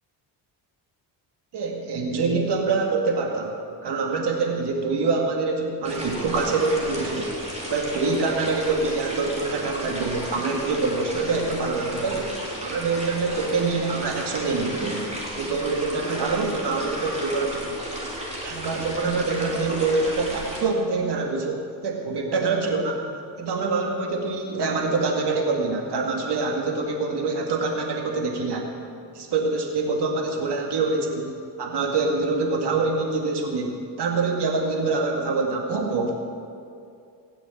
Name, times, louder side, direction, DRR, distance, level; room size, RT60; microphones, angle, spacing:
voice 1, 1.5-3.5 3.8-7.3 7.6-12.3 12.6-15.0 15.4-17.8 18.4-23.1 23.4-28.7 29.1-31.3 31.6-36.2, right 3 dB, 60° right, 1 dB, 2.3 m, -25 dB
sound 1, 5.8-20.6, equal, 15° right, 3.7 m, -34 dB
16.5 x 7.1 x 8.7 m, 2.4 s
cardioid pair, 95°, 45 cm